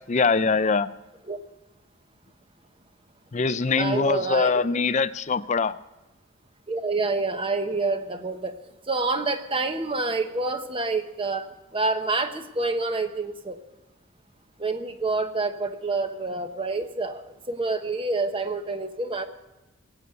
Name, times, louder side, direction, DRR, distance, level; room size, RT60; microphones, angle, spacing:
voice 1, 0.1-0.9 3.3-5.8, left 4 dB, 35° left, 13 dB, 0.5 m, -23 dB
voice 2, 3.8-4.5 6.7-8.5 8.9-13.6 14.6-19.3, right 3 dB, 25° right, 8 dB, 1.1 m, -27 dB
18.0 x 8.4 x 7.8 m, 1.1 s
head